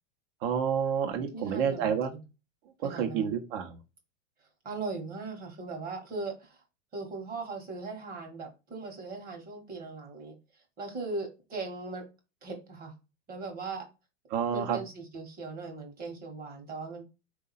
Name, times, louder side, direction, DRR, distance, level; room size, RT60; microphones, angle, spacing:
voice 1, 0.4-2.1 2.9-3.8 14.3-14.8, right 7 dB, 50° right, 5 dB, 1.1 m, -29 dB
voice 2, 1.3-2.2 2.8-3.3 4.6-6.6 6.9-10.3 10.8-12.0 12.4-12.9 13.3-13.9 14.5-17.0, right 3 dB, 25° right, 4 dB, 1.4 m, -39 dB
3.8 x 2.8 x 4.1 m, 0.28 s
hypercardioid pair, 130°, 33 cm